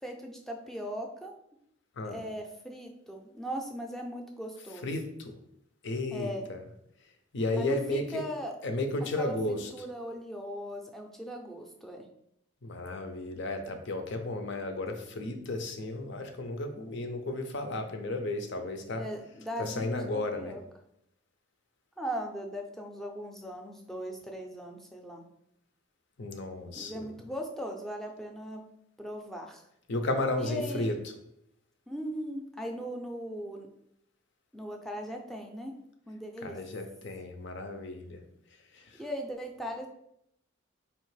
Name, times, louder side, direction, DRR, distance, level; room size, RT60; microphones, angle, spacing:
voice 1, 0.0-1.3 2.0-4.9 6.1-6.5 7.6-8.6 9.2-12.1 19.0-20.6 22.0-25.2 26.8-28.6 29.0-29.6 30.4-30.9 31.9-33.7 34.5-35.7 36.1-36.6 39.0-39.9, equal, ahead, 2 dB, 0.4 m, -39 dB
voice 2, 4.8-5.4 5.8-6.6 7.3-8.2 8.6-9.7 12.6-19.0 19.6-20.5 26.2-27.1 29.9-31.0 36.4-38.2 38.7-39.0, left 2 dB, 60° left, 6 dB, 0.6 m, -33 dB
4.3 x 2.9 x 3.2 m, 0.76 s
head